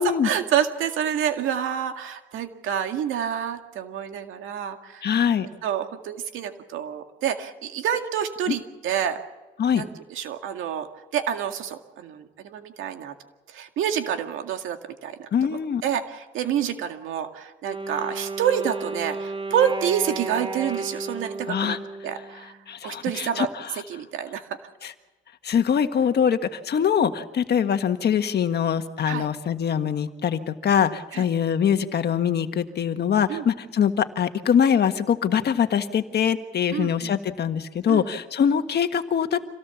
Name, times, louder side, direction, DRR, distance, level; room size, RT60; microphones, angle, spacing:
voice 1, 0.0-5.1 5.6-9.2 9.7-13.1 13.5-21.8 22.0-22.6 22.8-23.5 23.8-24.6 29.1-29.3 31.1-31.3 33.3-33.5 36.7-37.1 37.9-38.1, right 9 dB, 85° right, 6 dB, 2.1 m, -28 dB
voice 2, 5.0-5.5 8.5-8.6 9.6-9.8 15.3-15.8 21.5-21.8 22.7-23.5 24.8-24.9 25.4-39.4, left 8 dB, 55° left, 8 dB, 1.6 m, -23 dB
Wind instrument woodwind instrument, 17.6-22.7, right 3 dB, 25° right, 2.4 m, -33 dB
26.5 x 17.5 x 7.2 m, 1.1 s
cardioid pair, 90°, 20 cm